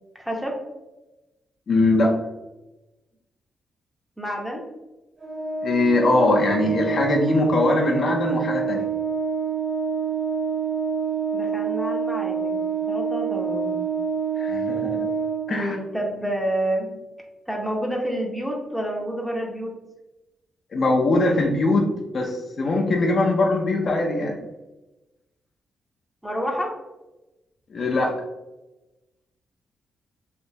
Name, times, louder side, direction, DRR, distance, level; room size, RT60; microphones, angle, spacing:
voice 1, 0.1-0.6 4.2-4.6 11.3-12.6 12.9-13.8 15.5-16.9 17.5-19.7 26.2-26.7, right 1 dB, 5° right, -1 dB, 0.7 m, -28 dB
voice 2, 1.7-2.2 5.6-8.9 14.4-15.1 15.5-15.8 20.7-24.4 27.7-28.2, left 2 dB, 50° left, 0 dB, 0.5 m, -21 dB
Organ, 5.2-15.9, right 6 dB, 40° right, 0.9 m, -27 dB
3.2 x 2.9 x 2.7 m, 1.0 s
cardioid pair, 125°, 0 cm